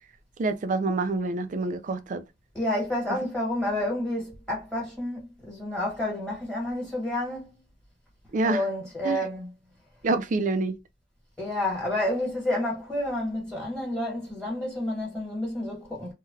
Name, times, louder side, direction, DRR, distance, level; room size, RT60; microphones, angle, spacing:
voice 1, 0.4-2.2 8.3-8.6 9.0-9.2 10.0-10.8, right 3 dB, 45° right, 0.4 m, -26 dB
voice 2, 2.5-7.6 8.4-9.5 11.4-16.1, left 1 dB, 5° left, 1.1 m, -30 dB
3.1 x 2.1 x 2.3 m
head